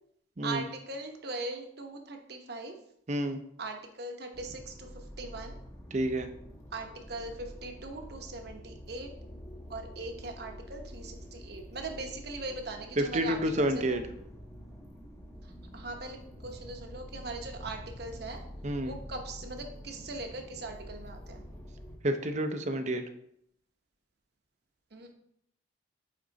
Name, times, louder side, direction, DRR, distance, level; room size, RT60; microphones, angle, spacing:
voice 1, 0.4-2.7 3.6-5.6 6.7-9.1 9.7-14.0 15.4-18.4 18.8-21.4 24.9-25.1, right 2 dB, 55° right, 4 dB, 1.0 m, -40 dB
voice 2, 3.1-3.4 5.9-6.3 13.0-14.0 18.6-18.9 22.0-23.0, right 1 dB, 35° right, 8 dB, 0.6 m, -29 dB
sound 1, 4.3-22.0, equal, 15° left, 0.8 m, -47 dB
8.7 x 3.7 x 4.0 m, 0.73 s
head